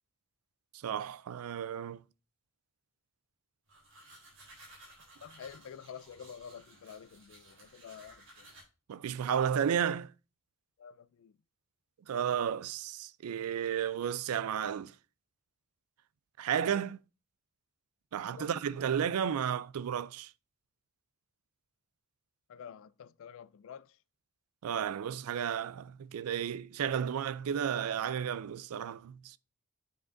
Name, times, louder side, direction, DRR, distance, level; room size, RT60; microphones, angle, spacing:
voice 1, 0.8-2.0 8.9-10.1 12.1-14.9 16.4-17.0 18.1-20.3 24.6-29.4, right 8 dB, 85° right, 0.4 m, -33 dB
sound 1, 3.7-8.6, right 1 dB, 60° right, 3.4 m, -56 dB
voice 2, 5.2-8.5 10.8-11.4 18.3-18.5 22.5-24.0, left 7 dB, 65° left, 0.3 m, -49 dB
8.2 x 5.0 x 2.5 m
head